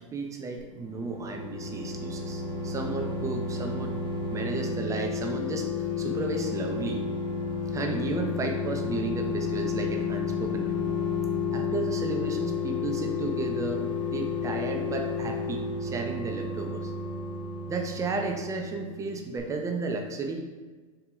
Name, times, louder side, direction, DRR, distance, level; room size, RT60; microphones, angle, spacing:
voice 1, 0.0-7.0 7.7-10.9 11.5-16.9 17.7-20.4, right 3 dB, 20° right, 3 dB, 0.5 m, -33 dB
sound 1, 0.8-19.1 19.4-19.5, left 4 dB, 30° left, 0.7 m, -31 dB
4.4 x 2.8 x 3.8 m, 1.4 s
hypercardioid pair, 115°, 17 cm